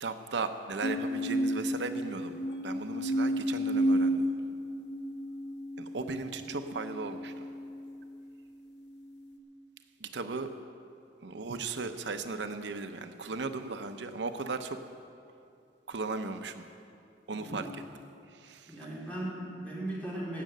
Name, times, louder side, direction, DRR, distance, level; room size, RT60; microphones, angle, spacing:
voice 1, 0.0-2.4 2.6-4.3 5.8-7.5 10.0-10.5 11.2-14.8 15.9-16.7 17.3-17.7 18.3-18.7, right 3 dB, 80° right, 9 dB, 0.7 m, -36 dB
sound 1, 0.8-8.2 8.9-9.4, equal, 75° left, 1.2 m, -32 dB
voice 2, 17.3-17.7 18.7-20.4, right 1 dB, 10° left, -6 dB, 3.7 m, -38 dB
16.5 x 6.5 x 7.8 m, 2.5 s
head